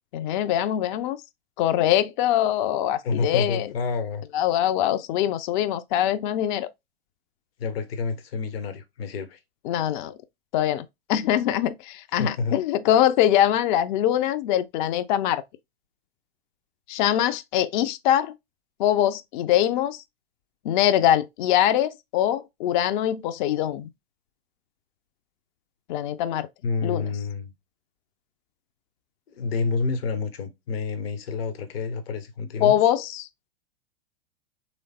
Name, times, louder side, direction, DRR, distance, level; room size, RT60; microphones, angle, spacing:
voice 1, 0.1-1.2 1.6-3.7 4.3-6.7 9.7-10.1 10.5-15.4 16.9-18.3 18.8-20.0 20.6-23.9 25.9-26.5 26.8-27.1 32.6-33.3, left 11 dB, 50° left, 0.5 m, -23 dB
voice 2, 3.0-4.2 7.6-9.4 12.2-12.6 26.6-27.5 29.3-32.8, left 4 dB, 65° left, 0.9 m, -29 dB
3.3 x 3.1 x 3.9 m
hypercardioid pair, 100°, 32 cm